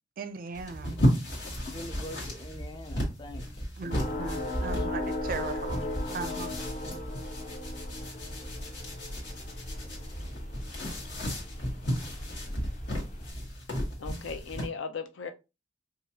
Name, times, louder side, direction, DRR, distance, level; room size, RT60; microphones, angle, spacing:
voice 1, 0.2-0.9 3.8-5.8 6.1-6.5, right 4 dB, 50° right, 0.4 m, -37 dB
sound 1, 0.5-14.7, equal, 65° left, 1.4 m, -34 dB
voice 2, 1.7-3.7 4.1-5.2, left 1 dB, 25° left, 0.4 m, -44 dB
sound 2, 3.9-13.3, left 1 dB, 40° left, 0.8 m, -37 dB
voice 3, 14.0-15.3, left 5 dB, 85° left, 0.6 m, -37 dB
4.9 x 2.3 x 2.7 m
head